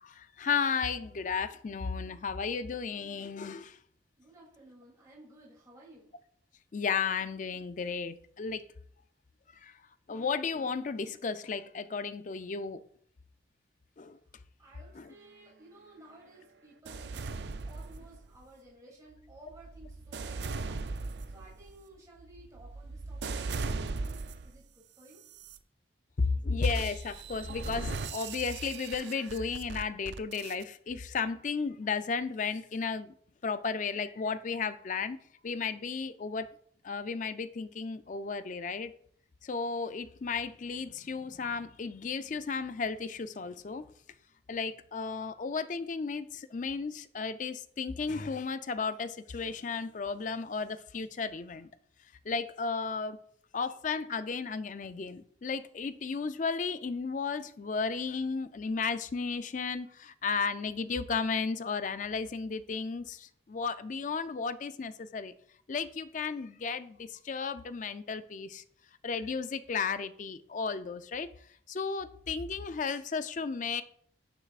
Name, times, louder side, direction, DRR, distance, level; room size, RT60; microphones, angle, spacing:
voice 1, 0.0-3.8 6.7-8.6 9.6-9.8 10.1-12.8 14.0-14.2 15.0-15.1 26.2-33.1 33.4-35.2 35.4-36.5 36.8-38.9 39.4-43.9 44.5-51.7 52.3-53.2 53.5-65.3 65.7-68.6 69.0-71.3 71.7-73.8, left 5 dB, 40° left, 0.4 m, -34 dB
voice 2, 4.2-6.1 14.6-17.4 17.6-25.2, right 1 dB, 20° right, 2.8 m, -55 dB
sound 1, 16.9-18.4 19.1-24.6 25.2-25.6 26.6-30.6, right 4 dB, 60° right, 0.4 m, -39 dB
9.2 x 6.6 x 2.4 m
head